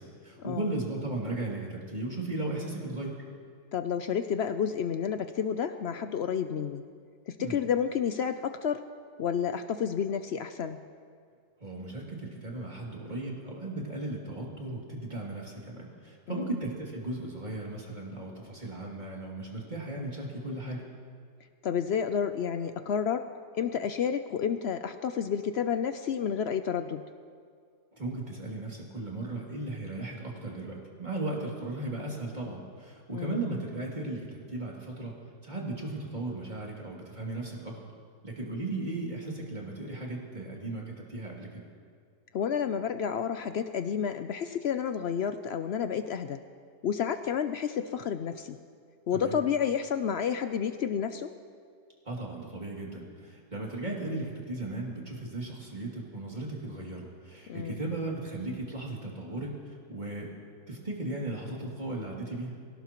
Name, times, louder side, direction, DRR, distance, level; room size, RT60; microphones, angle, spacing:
voice 1, 0.0-3.1 7.4-7.6 11.6-20.8 27.9-35.1 35.4-37.8 38.2-41.6 49.1-49.4 52.0-60.3 60.7-62.6, right 2 dB, 25° right, -3 dB, 2.8 m, -36 dB
voice 2, 3.7-6.8 7.3-8.9 9.2-10.8 16.3-16.5 21.6-23.3 23.6-27.0 33.1-33.4 42.3-46.4 46.8-48.6 49.1-51.3 57.5-57.8, left 7 dB, 75° left, 9 dB, 0.6 m, -30 dB
22.5 x 17.0 x 3.0 m, 2.2 s
omnidirectional pair, 1.7 m